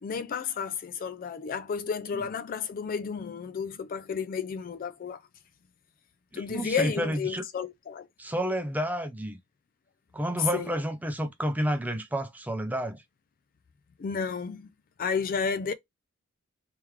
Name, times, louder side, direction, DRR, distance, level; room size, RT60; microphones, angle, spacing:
voice 1, 0.0-5.2 6.3-8.1 10.5-10.8 14.0-14.7 15.0-15.7, left 6 dB, 40° left, 0.3 m, -32 dB
voice 2, 6.3-7.4 8.2-9.4 10.1-13.0, equal, 10° right, 0.6 m, -30 dB
3.5 x 3.1 x 3.1 m
head